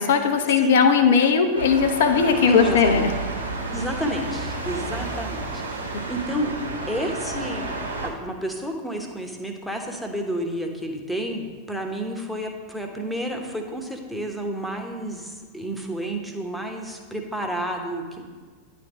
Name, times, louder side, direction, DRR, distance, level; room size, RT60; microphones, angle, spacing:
voice 1, 0.0-3.1, left 6 dB, 55° left, 6 dB, 0.6 m, -18 dB
sound 1, 1.5-8.1, right 2 dB, 80° right, 1.1 m, -31 dB
voice 2, 2.5-3.1 3.7-5.8 6.1-6.5 6.9-7.7 8.0-18.2, right 1 dB, ahead, 2 dB, 1.0 m, -30 dB
10.0 x 3.4 x 6.2 m, 1.5 s
figure-of-eight pair, 90°, 0 cm